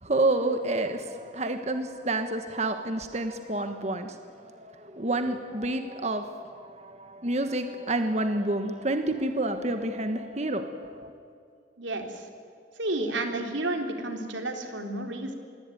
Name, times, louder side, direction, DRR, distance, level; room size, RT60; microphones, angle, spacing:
voice 1, 0.0-11.1, right 2 dB, 35° right, 7 dB, 1.4 m, -29 dB
voice 2, 11.8-12.2 12.8-15.3, right 2 dB, 90° right, 4 dB, 3.7 m, -31 dB
27.0 x 22.0 x 9.4 m, 2.3 s
head